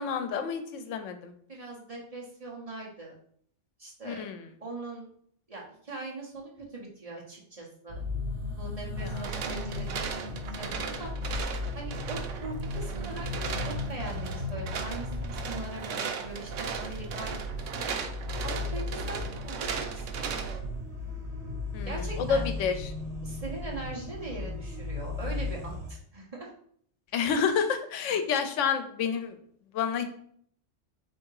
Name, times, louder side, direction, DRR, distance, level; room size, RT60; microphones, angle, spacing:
voice 1, 0.0-1.3 4.0-4.5 9.0-9.3 21.7-22.9 27.1-29.4 29.7-30.0, left 6 dB, 80° left, 7 dB, 0.9 m, -29 dB
voice 2, 1.5-3.1 3.8-4.3 4.6-5.1 5.5-8.0 8.6-10.0 10.5-11.1 11.7-17.4 17.7-18.0 18.4-20.4 21.8-22.4 23.2-26.5, right 2 dB, 30° right, -3 dB, 1.0 m, -41 dB
sound 1, 7.9-25.9, left 2 dB, 60° right, 1.1 m, -36 dB
sound 2, 9.0-20.6, right 6 dB, 85° right, 0.9 m, -37 dB
3.5 x 2.8 x 4.7 m, 0.62 s
omnidirectional pair, 1.3 m